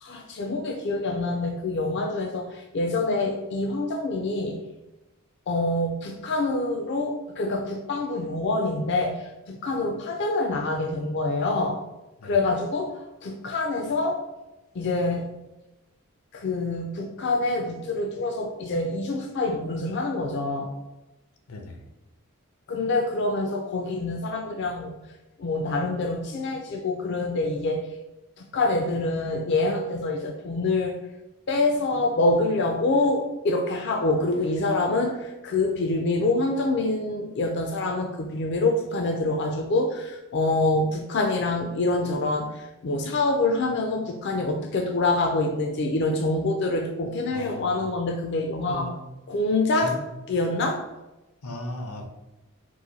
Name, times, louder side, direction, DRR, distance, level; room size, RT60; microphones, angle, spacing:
voice 1, 0.0-4.6 5.5-11.8 12.2-14.2 14.8-15.3 16.3-20.7 22.7-24.9 25.4-27.8 28.5-31.0 31.5-48.9 49.3-49.9 50.3-50.8, left 2 dB, 50° left, 3 dB, 0.4 m, -26 dB
voice 2, 21.5-21.8 47.3-47.8 48.7-48.9 49.7-50.0 51.4-52.1, left 1 dB, 90° left, 4 dB, 0.7 m, -36 dB
4.0 x 2.6 x 4.0 m, 1.0 s
head